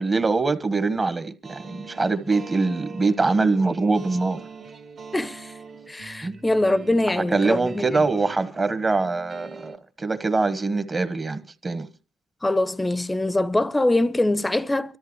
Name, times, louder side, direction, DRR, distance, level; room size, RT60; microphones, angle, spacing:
voice 1, 0.0-4.4 6.2-6.4 7.2-11.9, right 3 dB, 30° right, 1.2 m, -23 dB
sound 1, 1.4-9.8, right 5 dB, 60° right, 2.2 m, -43 dB
voice 2, 5.1-5.6 5.9-7.8 12.4-15.0, left 1 dB, 15° left, 0.7 m, -23 dB
25.0 x 13.5 x 3.2 m
cardioid pair, 90°, 0 cm